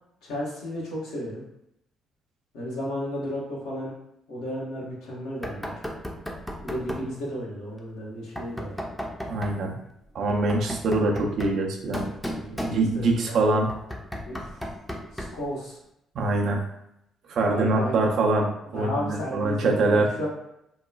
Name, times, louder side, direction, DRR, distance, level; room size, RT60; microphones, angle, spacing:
voice 1, 0.2-1.4 2.5-3.9 4.3-5.8 6.6-8.8 12.3-12.7 13.0-13.6 14.3-14.7 15.1-15.8 17.4-18.0 18.7-20.3, equal, 75° left, -5 dB, 1.0 m, -33 dB
Knock, 5.4-7.1 8.4-9.6 10.3-13.2 13.7-15.5, equal, 5° left, 0.5 m, -35 dB
voice 2, 9.2-9.8 10.1-12.1 12.6-13.7 16.2-16.6 17.3-20.1, right 2 dB, 65° right, 1 dB, 0.5 m, -24 dB
2.9 x 2.2 x 2.3 m, 0.79 s
hypercardioid pair, 50°, 0 cm